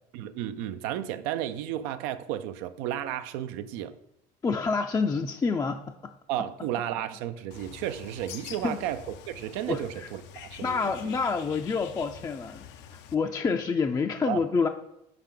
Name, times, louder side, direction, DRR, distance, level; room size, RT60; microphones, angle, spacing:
voice 1, 0.1-4.0 6.3-9.0 9.3-11.2 14.3-14.4, right 11 dB, 85° right, 10 dB, 0.4 m, -33 dB
voice 2, 4.4-6.1 8.6-8.8 9.7-10.1 10.6-12.6 12.9-14.7, left 4 dB, 20° left, 5 dB, 0.4 m, -28 dB
Bird, 7.5-13.2, left 9 dB, 75° left, 0.5 m, -46 dB
5.8 x 5.0 x 3.7 m, 0.82 s
supercardioid pair, 95°, 19 cm